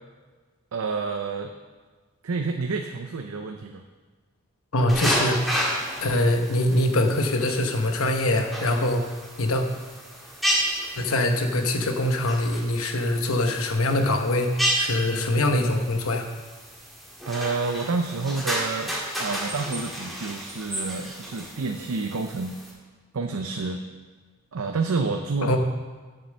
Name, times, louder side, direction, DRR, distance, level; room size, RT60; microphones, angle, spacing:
voice 1, 0.7-1.5 2.2-3.8 17.2-22.6 23.1-23.8 24.5-25.6, right 4 dB, 80° right, 5 dB, 0.6 m, -29 dB
voice 2, 4.7-5.7 6.0-9.0 9.4-9.6 11.0-16.3 25.4-25.6, left 1 dB, 75° left, 5 dB, 1.0 m, -23 dB
sound 1, 4.9-22.7, equal, ahead, 1.6 m, -32 dB
7.6 x 6.9 x 7.4 m, 1.4 s
head